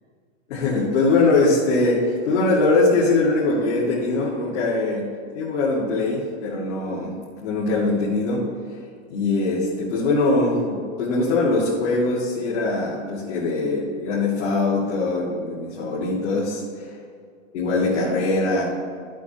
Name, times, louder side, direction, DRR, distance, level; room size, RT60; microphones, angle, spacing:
voice 1, 0.5-5.0 5.3-7.2 7.4-8.4 9.1-16.6 17.5-18.6, left 3 dB, 70° left, -7 dB, 2.5 m, -22 dB
13.0 x 8.3 x 3.1 m, 2.3 s
supercardioid pair, 170°, 37 cm